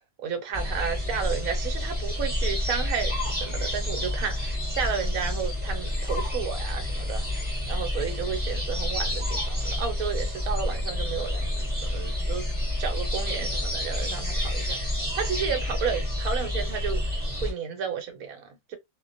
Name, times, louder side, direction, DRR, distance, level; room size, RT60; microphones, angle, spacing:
voice 1, 0.2-7.2 7.7-12.5 12.8-14.8 15.1-17.0 17.4-18.8, right 7 dB, 80° right, 1.1 m, -32 dB
sound 1, 0.5-17.5, left 1 dB, 10° right, 0.6 m, -29 dB
2.4 x 2.1 x 2.5 m
omnidirectional pair, 1.5 m